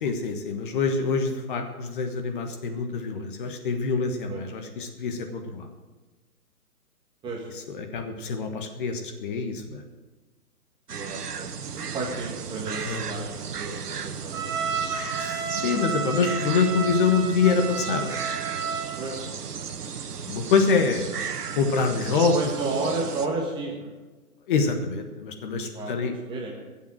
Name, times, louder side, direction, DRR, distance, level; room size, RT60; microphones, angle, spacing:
voice 1, 0.0-5.7 7.7-9.8 12.8-13.0 15.2-18.1 20.3-21.2 21.5-22.3 24.5-26.1, left 5 dB, 35° left, 5 dB, 1.4 m, -25 dB
voice 2, 10.9-15.2 19.0-19.2 21.7-22.0 22.3-23.9 25.7-26.6, right 3 dB, 10° right, 0 dB, 1.3 m, -33 dB
sound 1, 10.9-23.3, right 6 dB, 80° right, 1.4 m, -35 dB
Trumpet, 14.3-19.1, right 6 dB, 35° right, 2.9 m, -31 dB
16.5 x 7.4 x 7.6 m, 1.2 s
hypercardioid pair, 155°, 46 cm